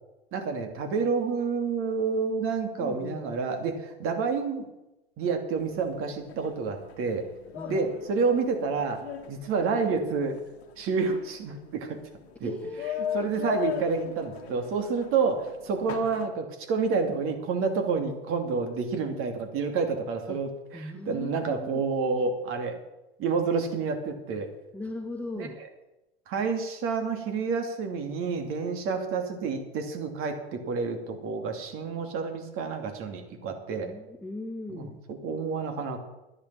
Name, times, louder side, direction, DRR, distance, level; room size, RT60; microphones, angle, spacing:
voice 1, 0.3-4.7 5.2-7.2 7.7-9.0 9.3-10.4 10.8-12.0 12.4-12.5 13.1-22.8 23.2-24.5 25.4-25.5 26.3-33.9 34.7-34.9 35.2-36.0, right 5 dB, 40° right, 5 dB, 2.7 m, -29 dB
voice 2, 2.8-3.3 7.5-7.9 12.4-13.2 18.0-18.1 20.3-20.4 20.7-21.8 24.7-25.6 33.8-35.0, left 2 dB, 5° left, 4 dB, 1.0 m, -38 dB
sound 1, 5.6-16.3, left 9 dB, 70° left, 1.8 m, -39 dB
11.5 x 10.0 x 7.0 m, 0.97 s
hypercardioid pair, 95°, 32 cm